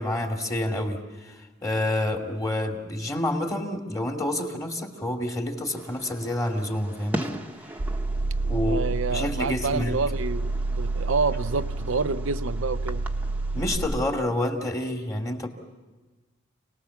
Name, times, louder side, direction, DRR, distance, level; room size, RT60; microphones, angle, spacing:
voice 1, 0.0-1.3 1.6-7.4 8.4-9.9 13.5-15.5, left 1 dB, 15° left, 2.5 m, -28 dB
Fireworks, 5.8-13.8, right 1 dB, 10° right, 1.1 m, -40 dB
sound 1, 7.8-13.9, right 2 dB, 65° right, 0.9 m, -29 dB
voice 2, 8.6-13.0, right 4 dB, 90° right, 0.7 m, -28 dB
28.0 x 19.5 x 7.2 m
head